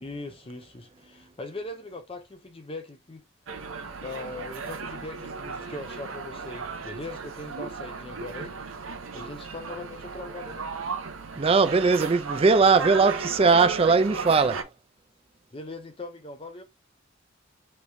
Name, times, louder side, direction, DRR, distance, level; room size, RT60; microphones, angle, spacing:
voice 1, 0.0-3.2 4.0-8.6 9.1-10.6 15.5-16.6, left 2 dB, 30° left, 0.6 m, -40 dB
sound 1, 3.5-14.6, right 5 dB, 80° right, 0.8 m, -36 dB
voice 2, 11.4-14.7, right 4 dB, 30° right, 0.4 m, -20 dB
5.0 x 3.2 x 2.7 m
head